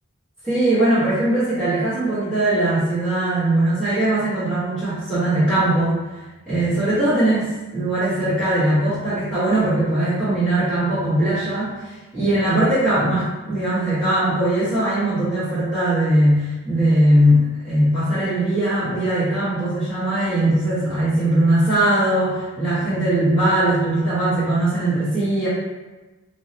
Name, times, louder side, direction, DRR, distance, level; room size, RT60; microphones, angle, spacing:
voice 1, 0.4-6.0 6.5-25.5, right 1 dB, 5° left, -17 dB, 1.2 m, -20 dB
4.5 x 2.1 x 2.7 m, 1.2 s
head